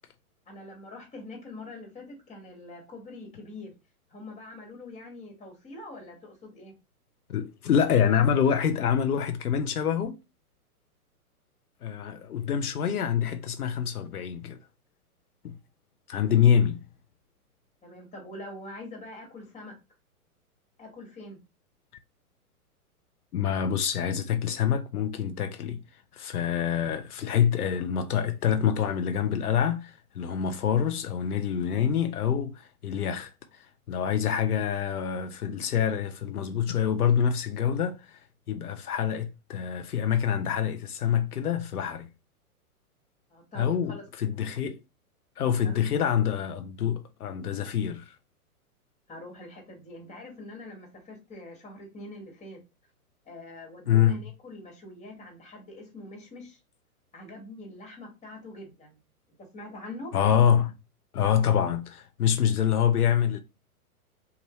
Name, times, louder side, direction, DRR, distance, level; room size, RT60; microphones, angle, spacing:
voice 1, 0.5-3.7 4.1-6.7 17.8-19.8 20.8-21.4 43.3-44.0 45.6-45.8 49.1-52.6 53.3-56.6 57.1-59.0 59.4-60.1, left 2 dB, 15° left, 1.7 m, -44 dB
voice 2, 7.3-10.2 11.8-14.6 15.4-15.5 16.1-16.8 23.3-25.8 26.1-33.3 33.9-38.2 38.5-42.1 43.6-44.8 45.4-48.1 53.9-54.2 60.1-60.7 61.1-63.4, left 8 dB, 75° left, 0.8 m, -26 dB
5.6 x 2.6 x 3.1 m
hypercardioid pair, 115°, 45 cm